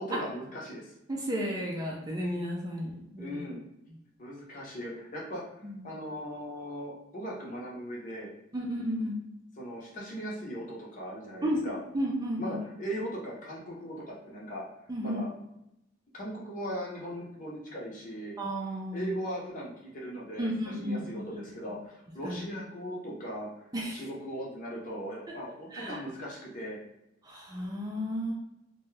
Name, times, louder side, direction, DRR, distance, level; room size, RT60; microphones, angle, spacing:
voice 1, 0.0-0.9 3.2-3.6 4.2-5.4 5.8-8.3 9.6-11.8 12.4-14.6 15.0-15.3 16.1-18.4 18.9-23.5 23.9-26.8, equal, 40° left, -4 dB, 0.8 m, -38 dB
voice 2, 1.1-3.4 5.6-5.8 8.5-9.1 11.4-11.6 11.9-12.6 14.9-15.2 18.4-19.1 20.4-21.5 22.2-22.4 23.7-24.0 25.7-26.0 27.2-28.3, equal, 20° right, -2 dB, 0.4 m, -33 dB
2.7 x 2.2 x 3.2 m, 0.83 s
head